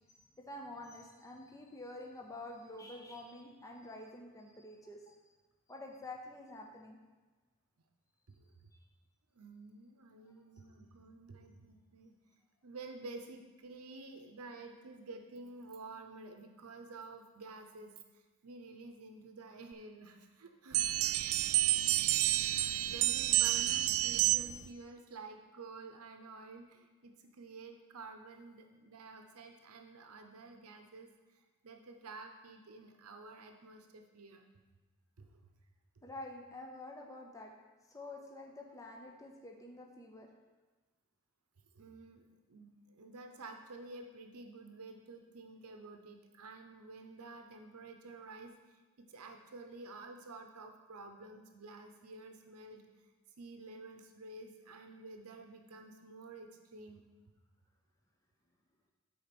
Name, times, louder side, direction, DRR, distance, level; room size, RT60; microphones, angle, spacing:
voice 1, 0.5-5.2 5.7-7.0 10.3-10.4 20.8-21.0 36.0-37.5 37.9-40.3, left 2 dB, 15° left, 0 dB, 0.7 m, -48 dB
voice 2, 9.3-12.1 12.6-21.1 22.4-31.1 31.6-34.4 35.2-35.3 41.7-48.6 49.0-52.8 53.4-57.0, right 3 dB, 80° right, 5 dB, 0.7 m, -50 dB
sound 1, 20.7-24.7, right 15 dB, 65° right, 0.3 m, -29 dB
8.5 x 4.3 x 6.0 m, 1.3 s
head